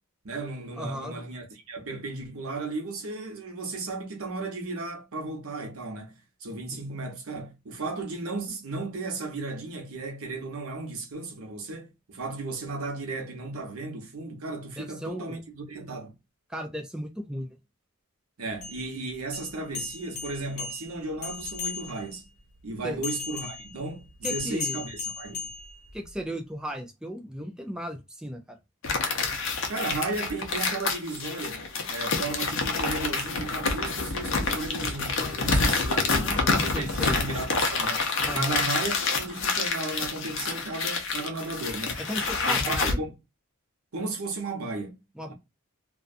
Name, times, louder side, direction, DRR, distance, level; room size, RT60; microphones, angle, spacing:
voice 1, 0.2-6.1 6.4-16.1 18.4-22.3 22.6-25.5 29.7-31.6 31.9-36.4 36.6-38.1 38.3-42.0 42.4-43.1 43.9-45.0 45.3-45.4, right 3 dB, 85° right, 0.9 m, -35 dB
voice 2, 0.8-1.2 6.7-6.8 14.8-15.4 16.5-17.6 22.8-23.0 24.2-24.8 25.9-28.6 36.2-37.2 38.2-38.7 42.0-43.0 45.2-45.3, equal, 5° right, 0.3 m, -35 dB
sound 1, 18.5-22.2 23.0-26.2, left 6 dB, 80° left, 1.0 m, -37 dB
sound 2, 28.8-42.9, left 4 dB, 65° left, 0.7 m, -28 dB
2.5 x 2.3 x 2.4 m
head